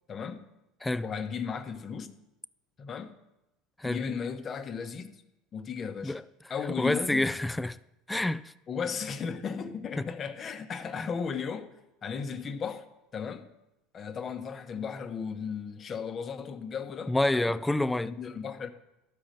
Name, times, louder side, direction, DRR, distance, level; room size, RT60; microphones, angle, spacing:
voice 1, 0.1-0.5 1.0-2.2 2.8-3.2 3.8-5.2 5.5-6.2 6.5-7.3 8.7-11.7 12.0-12.8 13.1-13.5 13.9-17.6 18.0-18.7, left 6 dB, 35° left, 1.0 m, -35 dB
voice 2, 6.8-7.8 8.1-8.5 10.0-10.1 11.0-11.1 17.1-18.2, left 2 dB, 10° left, 0.4 m, -28 dB
12.5 x 5.1 x 7.6 m
hypercardioid pair, 90°, 0 cm